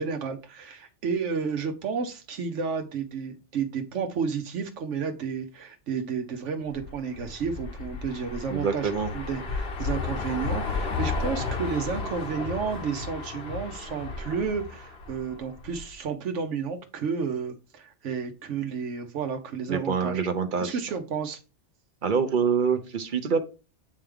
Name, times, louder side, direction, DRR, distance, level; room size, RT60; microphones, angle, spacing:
voice 1, 0.0-20.3 20.6-21.4, right 6 dB, 80° right, 1.1 m, -31 dB
sound 1, 6.7-15.9, left 4 dB, 60° left, 1.1 m, -33 dB
voice 2, 8.5-9.1 19.7-20.7 22.0-23.4, right 6 dB, 50° right, 0.7 m, -25 dB
8.4 x 3.4 x 3.5 m
omnidirectional pair, 1.2 m